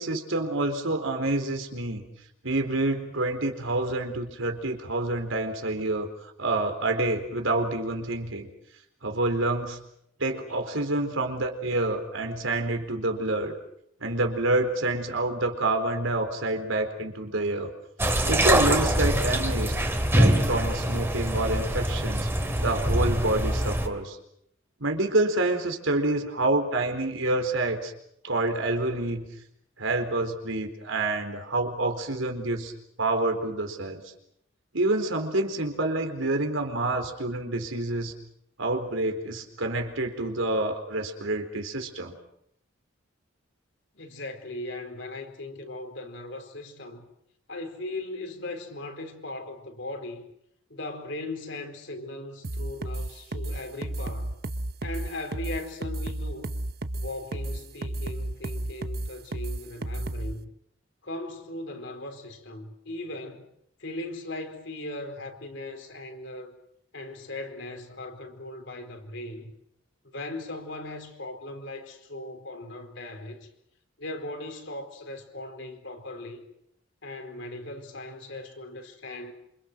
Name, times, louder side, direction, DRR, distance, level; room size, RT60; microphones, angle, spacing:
voice 1, 0.0-2.0 2.4-6.1 6.4-8.5 9.0-9.8 10.2-13.5 14.0-17.7 18.2-19.7 20.1-22.3 22.6-24.2 24.8-27.9 28.2-29.2 29.8-32.7 33.0-34.0 34.7-38.1 38.6-42.1, right 2 dB, 75° right, 4.2 m, -27 dB
sound 1, 18.0-23.9, right 1 dB, 10° right, 2.5 m, -24 dB
voice 2, 43.9-47.0 47.5-50.2 50.7-54.3 54.8-56.6 56.9-60.5 61.0-63.5 63.8-66.5 66.9-69.5 70.1-73.5 74.0-76.4 77.0-79.3, left 2 dB, 65° left, 4.3 m, -38 dB
sound 2, 52.4-60.3, right 1 dB, 50° right, 1.0 m, -32 dB
27.5 x 26.5 x 6.3 m
head